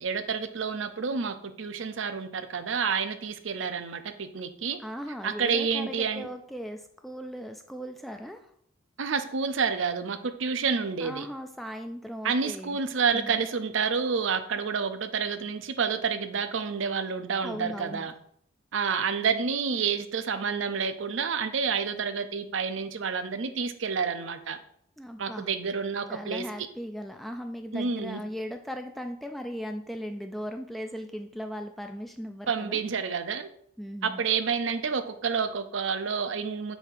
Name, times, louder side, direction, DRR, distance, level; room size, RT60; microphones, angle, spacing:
voice 1, 0.0-4.8 5.2-6.3 9.0-11.3 12.2-18.1 18.7-24.6 25.2-26.4 27.7-28.2 32.5-33.5 34.0-36.8, right 5 dB, 70° right, 10 dB, 0.6 m, -29 dB
voice 2, 4.8-8.5 11.0-12.8 13.1-13.4 17.4-18.1 25.0-25.5 26.1-32.8 33.8-34.2, equal, ahead, 5 dB, 0.3 m, -38 dB
7.9 x 2.8 x 5.8 m, 0.66 s
head